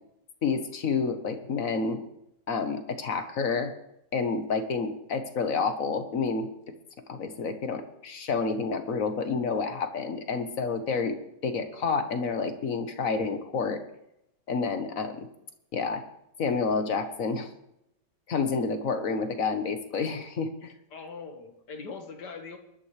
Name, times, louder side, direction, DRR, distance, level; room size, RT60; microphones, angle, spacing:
voice 1, 0.4-2.0 2.5-3.7 4.1-6.5 7.1-11.2 11.4-13.8 14.5-15.3 15.7-16.0 16.4-17.5 18.3-20.7, left 5 dB, 55° left, 8 dB, 1.4 m, -29 dB
voice 2, 20.9-22.6, left 4 dB, 70° left, 5 dB, 2.1 m, -41 dB
23.5 x 11.5 x 3.2 m, 0.83 s
omnidirectional pair, 1.8 m